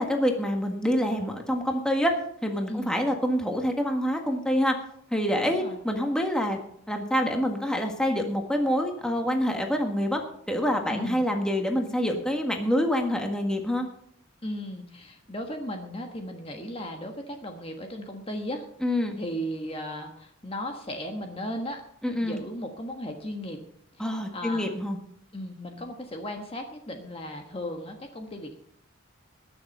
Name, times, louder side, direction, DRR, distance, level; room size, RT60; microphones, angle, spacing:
voice 1, 0.0-2.1 2.4-4.8 5.1-6.6 6.9-10.2 10.5-13.9 18.8-19.1 22.0-22.4 24.0-25.0, equal, 5° left, 3 dB, 1.6 m, -26 dB
voice 2, 5.4-5.8 10.9-11.2 14.4-18.6 19.2-21.8 22.2-23.6 24.0-24.1 24.3-24.7 25.3-28.6, equal, 25° left, 3 dB, 1.4 m, -36 dB
20.5 x 7.0 x 5.5 m, 0.69 s
head